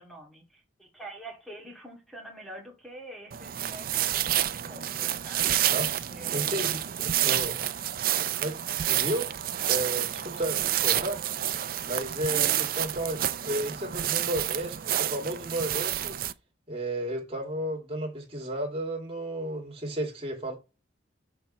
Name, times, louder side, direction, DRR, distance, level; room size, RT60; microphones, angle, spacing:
voice 1, 0.0-5.7 6.1-6.8 12.3-12.7, right 1 dB, ahead, 2.0 m, -45 dB
sound 1, 3.3-16.3, right 12 dB, 45° right, 0.4 m, -29 dB
voice 2, 5.7-6.0 6.3-7.6 8.4-8.6 8.9-9.3 9.6-11.2 11.9-16.2 16.7-20.6, right 1 dB, 30° right, 2.3 m, -33 dB
6.4 x 4.6 x 5.3 m
head